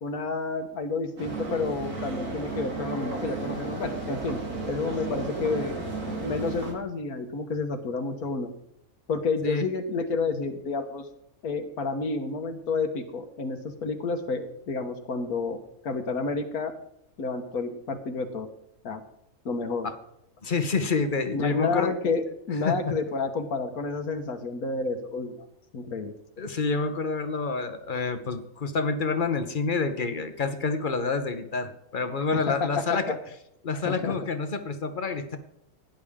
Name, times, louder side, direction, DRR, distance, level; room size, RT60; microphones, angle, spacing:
voice 1, 0.0-4.4 4.7-5.8 6.1-8.5 9.1-11.1 11.4-15.6 15.8-16.7 17.2-18.5 18.8-19.0 19.5-19.9 21.3-25.3 25.7-26.1 32.3-33.2 33.9-34.2, left 4 dB, 75° left, 7 dB, 1.7 m, -30 dB
sound 1, 1.2-6.7, right 3 dB, 80° right, 3.0 m, -33 dB
voice 2, 20.4-21.9 22.6-22.7 26.4-33.1 33.6-35.4, left 4 dB, 40° left, 8 dB, 1.1 m, -28 dB
16.0 x 10.5 x 3.7 m, 0.76 s
omnidirectional pair, 1.6 m